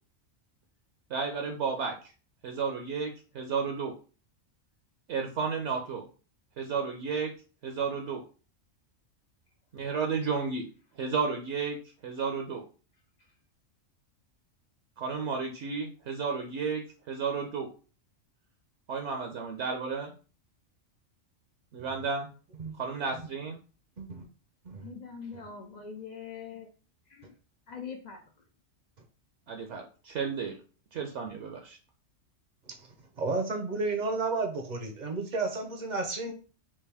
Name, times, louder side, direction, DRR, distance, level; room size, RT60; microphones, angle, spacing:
voice 1, 1.1-2.0 2.4-3.9 5.1-6.0 6.6-7.3 7.6-8.2 9.7-10.6 11.0-11.8 12.0-12.6 15.0-17.7 18.9-20.1 21.7-22.3 22.8-23.6 29.5-30.5 30.9-31.8, right 5 dB, 70° right, 3 dB, 0.8 m, -32 dB
voice 2, 24.8-26.7 27.1-27.3 27.7-28.2, left 6 dB, 75° left, 3 dB, 0.4 m, -42 dB
voice 3, 33.2-36.3, right 3 dB, 50° right, 4 dB, 0.6 m, -32 dB
3.4 x 2.5 x 3.3 m, 0.37 s
omnidirectional pair, 1.3 m